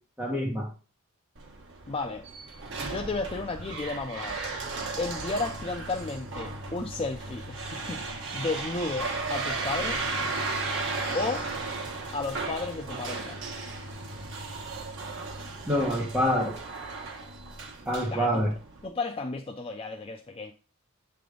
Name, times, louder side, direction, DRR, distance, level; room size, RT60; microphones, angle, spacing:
voice 1, 0.2-0.7 11.0-11.2 15.7-16.5 17.9-18.5, equal, 5° right, 1.0 m, -26 dB
sound 1, 1.3-18.9, right 3 dB, 55° right, 1.1 m, -35 dB
voice 2, 1.9-2.3 2.8-4.4 5.0-8.0 8.3-10.1 11.1-11.5 12.1-13.4 16.2-16.4 18.1-18.4 18.8-20.5, left 3 dB, 25° left, 0.4 m, -33 dB
7.7 x 3.4 x 3.7 m
head